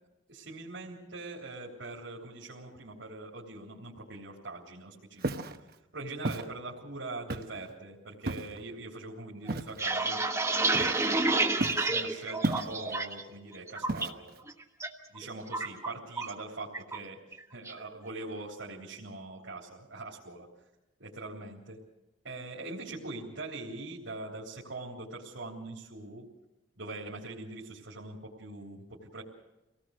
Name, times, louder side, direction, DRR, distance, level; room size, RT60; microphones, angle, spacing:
voice 1, 0.3-10.2 10.7-11.0 11.5-14.3 15.1-17.2 17.5-20.5 21.0-21.8 22.2-26.2 26.8-29.2, right 2 dB, 75° right, -3 dB, 3.5 m, -42 dB
Walk footsteps, 5.2-5.6 6.2-6.5 7.3-7.6 8.3-8.6 9.5-9.8 10.7-11.2 11.6-11.9 12.4-13.0 13.9-14.4, right 2 dB, 50° right, 1.0 m, -33 dB
sound 1, 9.5-13.2 13.5-14.1 14.5-14.9 15.1-16.4 16.7-17.0 17.3-17.8, right 3 dB, 15° right, 1.2 m, -29 dB
26.0 x 18.5 x 6.5 m, 1.0 s
head